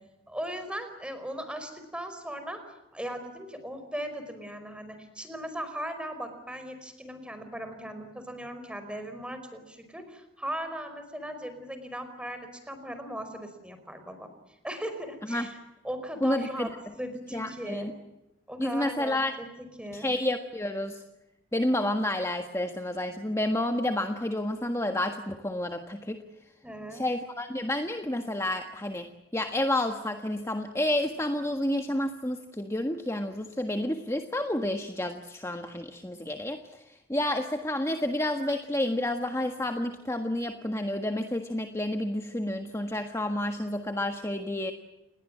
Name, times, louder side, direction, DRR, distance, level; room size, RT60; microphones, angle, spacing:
voice 1, 0.3-2.6 2.9-14.3 14.6-15.6 15.8-18.0 18.5-20.1 26.6-27.0, equal, 5° right, 8 dB, 5.0 m, -38 dB
voice 2, 16.2-16.7 17.3-17.9 18.6-19.3 19.9-21.0 21.5-26.2 26.9-29.1 29.3-36.6 37.1-44.7, left 1 dB, 15° left, 5 dB, 1.5 m, -30 dB
30.0 x 21.0 x 7.5 m, 0.95 s
head